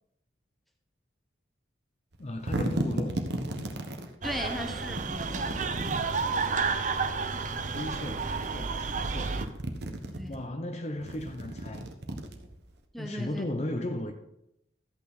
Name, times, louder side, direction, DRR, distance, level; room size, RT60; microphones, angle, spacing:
sound 1, 2.1-4.1 4.9-6.5 7.4-8.5 8.9-10.4 11.0-12.8, right 1 dB, 60° right, 1.1 m, -35 dB
voice 1, 2.2-3.3 7.4-9.4 10.3-11.9 13.0-14.1, left 1 dB, 35° left, 0.7 m, -36 dB
voice 2, 4.2-5.9 10.1-10.4 12.9-13.5, equal, ahead, 1.1 m, -38 dB
sound 2, 4.2-9.5, right 4 dB, 40° right, 0.6 m, -31 dB
13.5 x 8.4 x 4.1 m
head